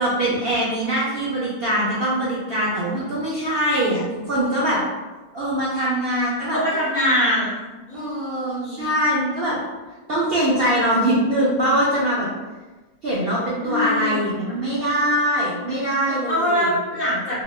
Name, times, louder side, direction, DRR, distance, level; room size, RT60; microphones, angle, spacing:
voice 1, 0.0-4.8 5.3-6.6 7.9-9.6 10.1-12.3 13.0-16.7, right 1 dB, 65° right, -8 dB, 0.6 m, -22 dB
voice 2, 6.5-7.5 7.9-8.8 13.6-14.2 16.3-17.4, left 1 dB, 45° left, -10 dB, 0.6 m, -23 dB
2.8 x 2.1 x 2.3 m, 1.2 s
omnidirectional pair, 1.5 m